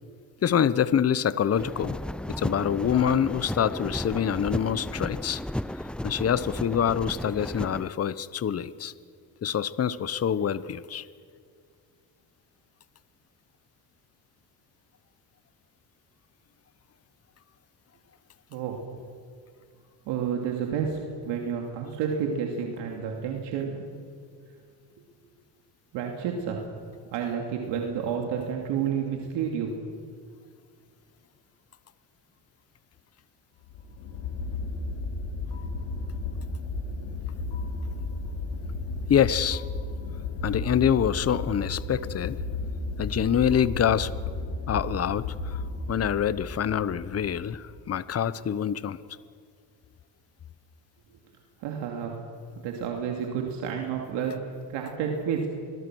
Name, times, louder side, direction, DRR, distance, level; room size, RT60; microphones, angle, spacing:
voice 1, 0.4-2.0 2.3-5.4 6.0-8.9 9.4-11.1 39.1-39.6 40.4-42.4 43.0-44.1 44.7-45.6 45.9-49.0, left 8 dB, 35° left, 16 dB, 0.9 m, -25 dB
sound 1, 1.6-7.9, left 1 dB, ahead, 0.6 m, -34 dB
voice 2, 18.5-18.8 20.1-23.8 25.9-26.6 27.1-29.7 51.6-52.1 52.6-54.3 54.7-55.5, right 7 dB, 80° right, 1 dB, 2.7 m, -30 dB
sound 2, 33.6-47.8, left 3 dB, 85° left, 3.6 m, -34 dB
25.5 x 22.0 x 6.3 m, 2.2 s
supercardioid pair, 80°, 42 cm